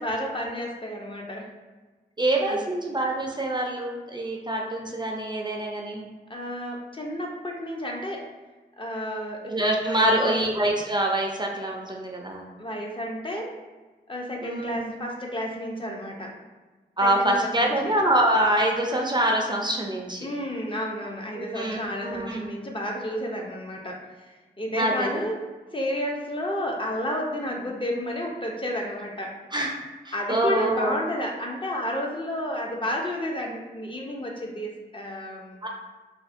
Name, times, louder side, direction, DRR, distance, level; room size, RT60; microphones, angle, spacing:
voice 1, 0.0-1.5 2.5-2.7 6.3-8.3 8.8-9.5 9.8-10.4 12.6-13.6 14.1-16.3 17.0-17.7 20.2-25.4 25.7-29.3 30.1-35.7, equal, 30° left, 0 dB, 0.5 m, -31 dB
voice 2, 2.2-6.1 9.5-12.5 14.4-14.9 17.0-20.3 21.4-22.5 24.8-25.2 29.5-29.8 30.1-31.0 35.6-35.7, right 1 dB, 25° right, 0 dB, 0.4 m, -25 dB
2.5 x 2.4 x 2.4 m, 1.3 s
cardioid pair, 50°, 18 cm